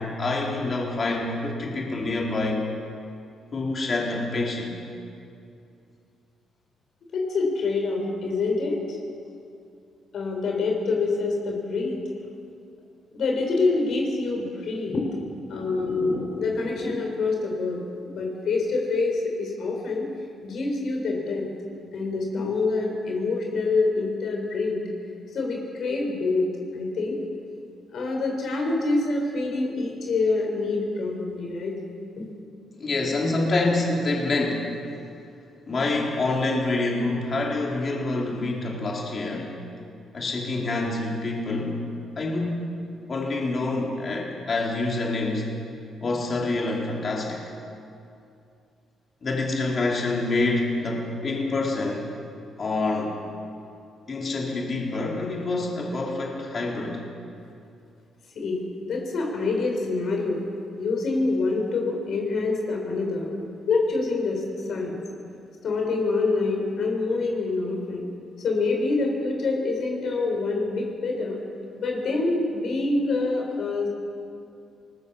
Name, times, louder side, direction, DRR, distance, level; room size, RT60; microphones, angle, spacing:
voice 1, 0.0-2.7 3.5-4.8 32.8-34.7 35.7-39.5 40.1-41.8 42.2-42.7 43.1-45.5 46.0-47.4 49.2-52.1 52.6-53.2 54.1-57.0, left 2 dB, 40° left, -2 dB, 4.1 m, -26 dB
voice 2, 7.1-9.0 10.1-12.0 13.1-17.8 18.2-20.1 20.4-21.5 21.9-24.8 25.3-26.5 26.7-27.2 27.9-31.8 32.2-32.3 58.4-60.5 60.8-63.3 63.7-64.4 64.7-65.0 65.6-68.1 68.4-71.4 71.8-73.9, left 3 dB, 65° left, 0 dB, 5.4 m, -26 dB
24.0 x 19.5 x 7.3 m, 2.5 s
cardioid pair, 90°, 0 cm